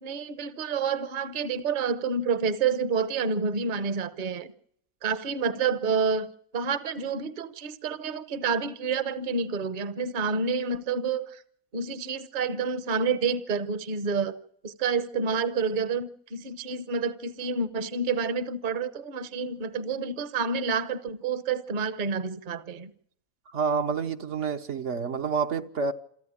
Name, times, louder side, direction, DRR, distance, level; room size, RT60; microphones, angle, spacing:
voice 1, 0.0-4.5 5.0-6.3 6.5-11.4 11.7-14.4 14.6-22.9, right 5 dB, 40° right, 1.0 m, -29 dB
voice 2, 23.5-25.9, right 5 dB, 60° right, 1.3 m, -28 dB
28.0 x 9.5 x 9.9 m
omnidirectional pair, 1.4 m